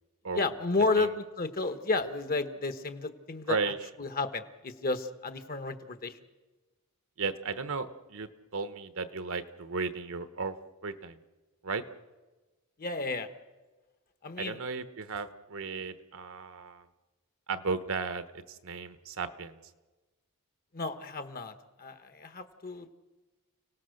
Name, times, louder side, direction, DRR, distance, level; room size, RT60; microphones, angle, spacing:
voice 1, 0.3-3.6 4.0-6.2 12.8-13.3 14.2-14.6 20.7-22.9, left 3 dB, 40° left, 9 dB, 1.2 m, -32 dB
voice 2, 7.2-10.6 10.8-11.2 11.6-11.8 14.4-16.9 17.5-19.6, right 4 dB, 65° right, 11 dB, 1.1 m, -35 dB
30.0 x 18.0 x 6.6 m, 1.2 s
head